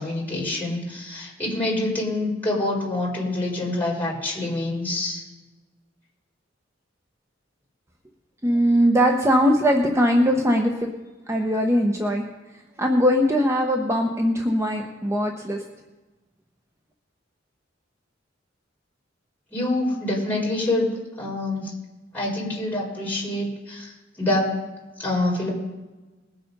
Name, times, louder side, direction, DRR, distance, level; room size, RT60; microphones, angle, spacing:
voice 1, 0.0-5.2 19.5-20.9 21.2-21.7 22.1-23.9 24.2-24.5 25.0-25.5, left 2 dB, 10° left, -5 dB, 4.5 m, -26 dB
voice 2, 8.4-10.9 11.3-12.2 12.8-15.6, equal, 15° right, 2 dB, 0.9 m, -20 dB
20.5 x 7.1 x 5.3 m, 1.2 s
head